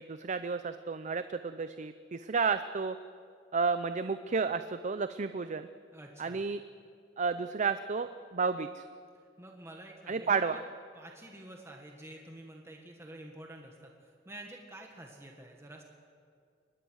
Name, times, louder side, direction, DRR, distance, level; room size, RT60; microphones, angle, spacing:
voice 1, 0.0-3.0 3.5-5.7 6.2-6.6 7.2-8.8 10.1-10.6, right 5 dB, 40° right, 11 dB, 0.6 m, -32 dB
voice 2, 5.9-6.4 9.4-10.4 10.9-15.8, right 1 dB, 15° right, 1 dB, 1.7 m, -49 dB
23.5 x 20.0 x 6.4 m, 2.3 s
head